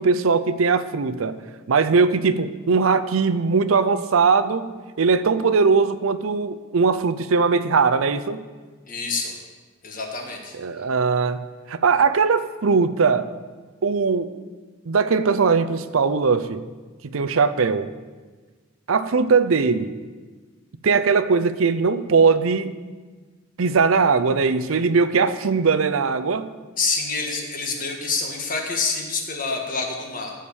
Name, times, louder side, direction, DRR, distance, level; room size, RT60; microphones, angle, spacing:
voice 1, 0.0-1.4 1.7-8.4 10.5-13.3 13.8-14.3 14.9-16.6 17.1-17.9 18.9-19.9 20.8-22.8 23.6-26.5, right 5 dB, 80° right, 12 dB, 0.6 m, -20 dB
voice 2, 8.9-9.3 9.8-10.5 26.8-30.3, left 4 dB, 40° left, 2 dB, 1.6 m, -27 dB
15.0 x 5.0 x 7.0 m, 1.4 s
head